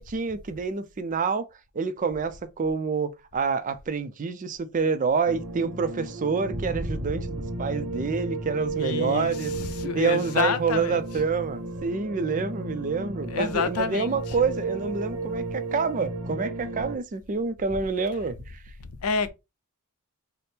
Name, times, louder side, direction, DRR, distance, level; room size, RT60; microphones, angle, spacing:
voice 1, 0.0-1.5 1.7-9.5 9.8-18.5, right 5 dB, 35° right, 0.4 m, -27 dB
sound 1, 5.3-17.0, right 2 dB, 85° right, 0.9 m, -34 dB
voice 2, 8.8-11.0 13.3-14.5 19.0-19.3, left 5 dB, 70° left, 0.5 m, -29 dB
4.3 x 2.0 x 3.3 m
head